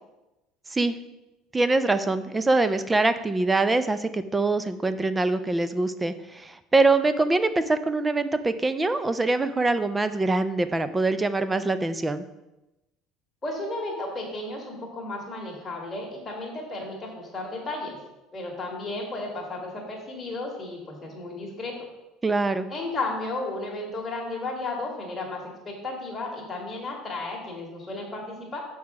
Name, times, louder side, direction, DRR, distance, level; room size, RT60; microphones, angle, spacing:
voice 1, 1.5-12.2 22.2-22.7, right 2 dB, 10° right, 12 dB, 0.3 m, -24 dB
voice 2, 13.4-18.0 18.3-21.7 22.7-28.6, left 2 dB, 15° left, -2 dB, 1.6 m, -33 dB
6.4 x 4.7 x 6.1 m, 0.97 s
cardioid pair, 175°, 0 cm